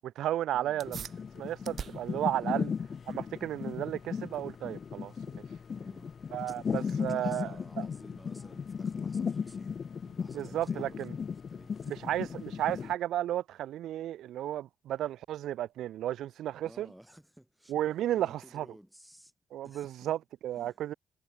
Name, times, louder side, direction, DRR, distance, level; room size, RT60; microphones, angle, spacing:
voice 1, 0.0-1.0 1.4-2.7 3.1-5.4 6.3-7.8 10.3-11.1 11.9-16.9 17.7-18.7 19.5-20.9, right 12 dB, 80° right, 0.7 m, -33 dB
sound 1, 0.8-12.9, left 6 dB, 45° left, 0.8 m, -37 dB
sound 2, 0.8-10.7, right 8 dB, 55° right, 1.3 m, -50 dB
voice 2, 5.7-9.8 10.2-12.0 16.6-17.7 18.1-19.3 19.6-20.1 20.6-20.9, equal, 5° right, 3.8 m, -55 dB
cardioid pair, 90°, 0 cm